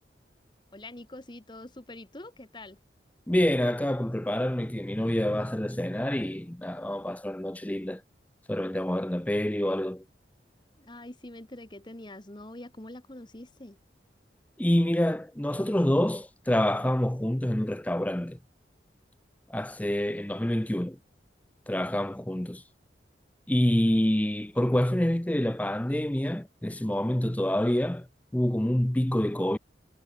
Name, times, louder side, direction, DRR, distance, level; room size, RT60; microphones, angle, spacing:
voice 1, 0.7-2.8 10.8-13.8, left 1 dB, 25° left, 1.3 m, -44 dB
voice 2, 3.3-8.0 8.5-10.0 14.6-18.4 19.5-21.0 21.7-22.6 23.5-28.1 28.3-29.6, left 1 dB, 10° left, 0.6 m, -27 dB
head